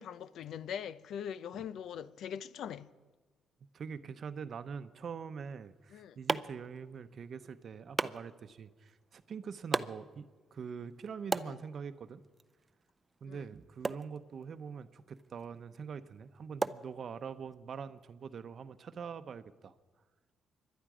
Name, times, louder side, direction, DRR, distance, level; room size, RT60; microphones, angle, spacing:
voice 1, 0.0-2.9 5.9-6.2 11.4-11.6 13.3-13.4, left 8 dB, 75° left, 0.5 m, -42 dB
voice 2, 3.7-12.2 13.2-19.7, right 6 dB, 55° right, 0.8 m, -44 dB
sound 1, 5.6-17.5, right 3 dB, 25° right, 0.5 m, -41 dB
25.5 x 11.5 x 5.0 m
cardioid pair, 90°, 0 cm